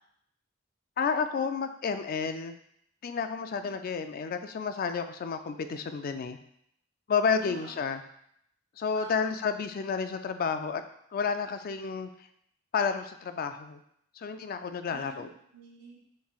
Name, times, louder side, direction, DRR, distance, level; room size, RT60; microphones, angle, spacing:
voice 1, 1.0-2.5 3.0-6.4 7.1-8.0 8.8-10.8 11.1-12.1 12.7-13.8 14.2-15.3, left 5 dB, 50° left, 8 dB, 0.3 m, -31 dB
voice 2, 7.3-7.7 8.9-9.5 14.9-16.0, right 2 dB, 65° right, -9 dB, 1.5 m, -47 dB
6.9 x 3.2 x 2.4 m, 0.72 s
head